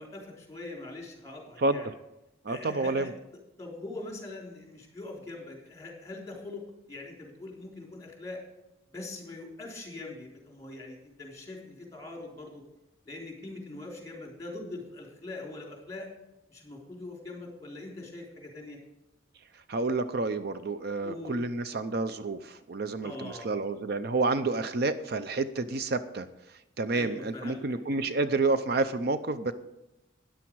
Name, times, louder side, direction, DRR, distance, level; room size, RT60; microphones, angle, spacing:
voice 1, 0.0-1.9 2.5-3.1 3.6-8.4 8.9-12.6 13.0-16.1 16.5-18.8 21.0-21.4 23.0-23.5 26.9-27.6 27.9-28.0, left 2 dB, 15° left, 0 dB, 3.7 m, -42 dB
voice 2, 2.4-3.1 19.7-26.3 26.8-29.5, right 3 dB, 55° right, 11 dB, 0.6 m, -29 dB
13.5 x 10.5 x 4.7 m, 0.95 s
head